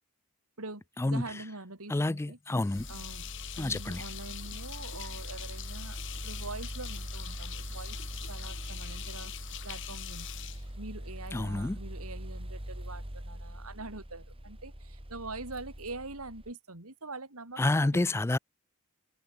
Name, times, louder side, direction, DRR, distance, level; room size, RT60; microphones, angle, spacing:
voice 1, 0.6-2.4 2.9-3.3 3.6-18.1, right 3 dB, 75° right, 4.0 m, -44 dB
voice 2, 1.9-2.9 3.6-4.0 11.3-11.8 17.6-18.4, left 2 dB, 10° left, 0.3 m, -28 dB
sound 1, 2.6-11.4, left 13 dB, 55° left, 1.1 m, -44 dB
sound 2, 2.8-16.5, equal, 25° right, 2.9 m, -42 dB
head